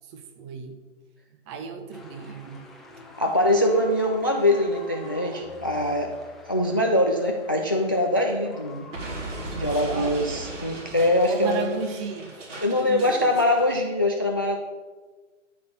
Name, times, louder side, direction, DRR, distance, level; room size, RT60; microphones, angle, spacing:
voice 1, 0.1-0.8 1.5-2.7 9.5-10.2 11.3-12.4 12.7-13.3, right 5 dB, 20° right, 7 dB, 1.0 m, -34 dB
sound 1, 1.9-13.8, left 3 dB, ahead, 0.9 m, -48 dB
voice 2, 3.2-6.1 6.5-8.9 9.6-11.7 12.6-14.6, left 1 dB, 20° left, 3 dB, 0.3 m, -23 dB
Explosion, 8.9-13.7, right 2 dB, 75° right, 4.0 m, -37 dB
12.0 x 5.9 x 7.2 m, 1.3 s
hypercardioid pair, 145°, 38 cm